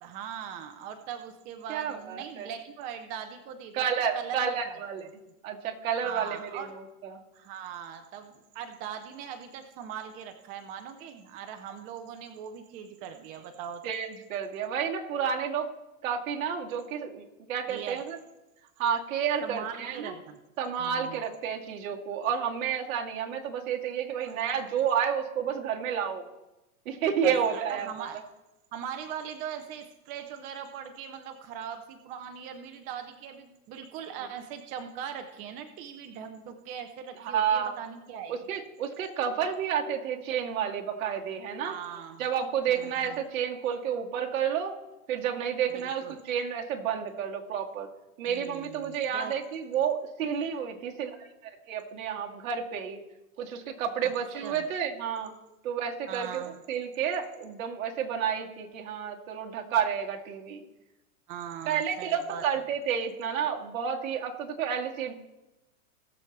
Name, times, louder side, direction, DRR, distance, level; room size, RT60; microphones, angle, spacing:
voice 1, 0.0-4.8 6.0-6.8 7.3-13.9 17.7-18.0 19.4-20.4 20.8-21.2 24.2-24.4 27.2-28.2 28.7-38.5 41.6-42.3 42.7-43.2 45.7-46.1 48.2-49.3 54.4-54.6 56.1-56.6 61.3-62.5, right 8 dB, 20° right, 7 dB, 0.4 m, -40 dB
voice 2, 1.7-2.5 3.7-5.1 5.4-7.2 13.8-15.7 16.0-18.2 18.8-20.1 20.6-26.3 26.9-27.9 37.2-37.8 38.3-41.7 42.2-44.8 45.1-47.9 48.2-51.2 51.4-53.0 53.4-55.3 55.6-60.6 61.7-65.1, right 8 dB, 60° right, 1 dB, 1.9 m, -30 dB
18.5 x 7.2 x 3.2 m, 0.98 s
hypercardioid pair, 135°, 45 cm